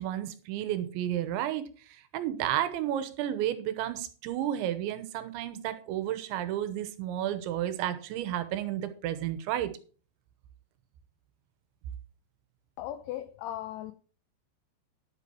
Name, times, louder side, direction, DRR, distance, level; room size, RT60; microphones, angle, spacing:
voice 1, 0.0-1.6 2.1-9.7, right 12 dB, 85° right, 3.2 m, -32 dB
voice 2, 12.8-13.9, left 13 dB, 90° left, 2.3 m, -37 dB
10.5 x 8.4 x 4.5 m
omnidirectional pair, 5.3 m